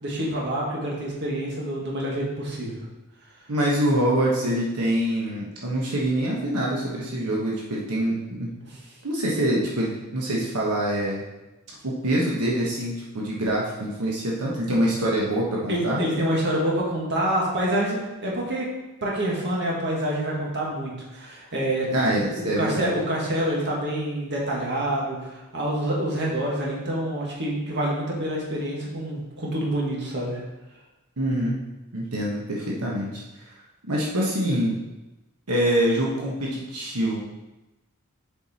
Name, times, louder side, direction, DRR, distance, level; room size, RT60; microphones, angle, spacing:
voice 1, 0.0-2.8 8.6-8.8 15.7-18.7 19.0-21.9 22.3-30.4, right 1 dB, 50° right, -3 dB, 1.7 m, -27 dB
voice 2, 3.5-8.5 9.0-11.2 11.8-16.0 21.9-22.9 31.2-31.6 31.9-33.5 33.9-34.8 35.5-37.2, right 1 dB, 85° right, -3 dB, 1.2 m, -25 dB
7.2 x 4.6 x 4.2 m, 1.0 s
head